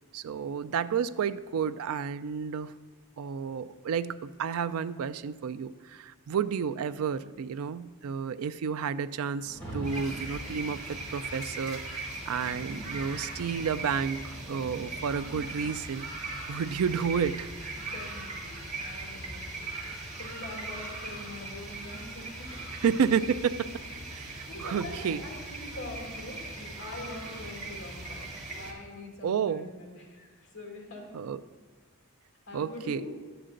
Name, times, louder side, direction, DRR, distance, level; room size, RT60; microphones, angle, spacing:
voice 1, 0.1-2.7 3.2-16.0 16.5-17.5 22.7-23.8 24.1-25.2 29.2-29.7 31.1-31.4 32.5-33.0, right 7 dB, 75° right, 13 dB, 0.3 m, -31 dB
Rain, 9.3-18.4, right 1 dB, 5° left, 2.9 m, -47 dB
sound 1, 9.8-28.7, right 2 dB, 30° right, 1.6 m, -39 dB
voice 2, 17.8-19.8 20.2-22.7 22.9-23.0 24.5-31.2 32.5-33.1, left 2 dB, 60° left, -1 dB, 2.3 m, -44 dB
11.0 x 8.0 x 3.8 m, 1.5 s
head